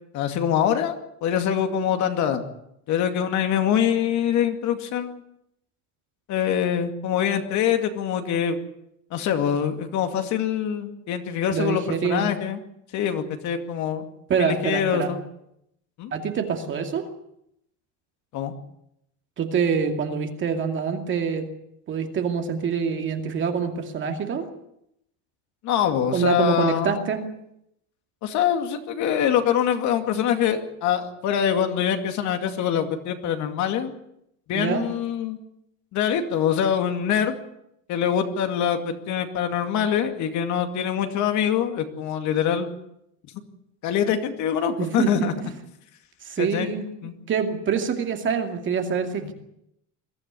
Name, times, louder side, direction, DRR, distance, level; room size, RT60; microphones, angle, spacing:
voice 1, 0.1-0.9 1.2-2.4 2.9-5.2 6.3-8.6 9.1-12.6 12.9-14.1 14.4-15.2 16.0-16.1 18.3-18.5 25.6-27.0 28.2-33.9 34.5-35.4 35.9-37.4 37.9-42.8 43.8-45.3 46.4-46.7 47.0-47.1 49.2-49.3, left 9 dB, 45° left, 6 dB, 2.4 m, -24 dB
voice 2, 11.5-12.3 14.3-15.1 16.1-17.1 19.4-21.5 21.9-24.5 26.1-27.2 34.5-34.8 44.8-45.5 46.2-49.3, right 6 dB, 30° right, 5 dB, 2.4 m, -25 dB
22.0 x 14.0 x 9.6 m, 0.78 s
cardioid pair, 165°, 39 cm